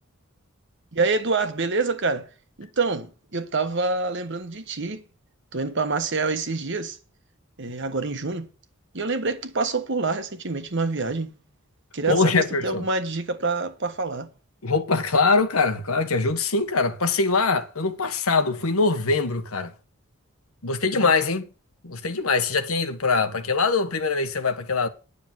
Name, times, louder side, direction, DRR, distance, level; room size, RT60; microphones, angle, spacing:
voice 1, 0.9-2.3 2.6-5.0 5.5-7.0 7.6-8.5 8.9-11.3 11.9-14.3 20.9-21.1, right 3 dB, 60° right, 1.3 m, -26 dB
voice 2, 12.1-12.9 14.6-19.7 20.6-21.5 21.8-24.9, left 4 dB, 90° left, 1.4 m, -23 dB
9.9 x 6.8 x 7.6 m
head